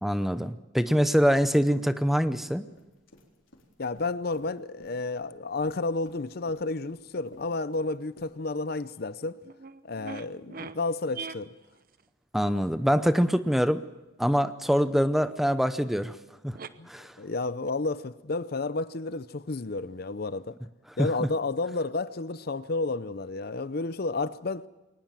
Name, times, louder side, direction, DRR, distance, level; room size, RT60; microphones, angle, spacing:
voice 1, 0.0-2.6 12.3-13.8 14.2-16.2 16.4-16.6 16.9-17.1 21.0-21.3, equal, ahead, 0.7 m, -24 dB
sound 1, 2.3-2.4 2.7-5.4 5.6-8.3, left 1 dB, 85° left, 4.1 m, -54 dB
voice 2, 3.8-9.4 9.8-11.5 16.8-16.9 17.2-20.6 21.0-24.7, left 3 dB, 50° left, 0.6 m, -31 dB
sound 2, 8.8-8.9 9.2-10.8 11.1-12.0 12.7-12.8 15.5-15.6 15.8-15.9 16.6-16.7 17.2-17.8, right 5 dB, 45° right, 0.8 m, -42 dB
22.0 x 19.5 x 7.5 m
head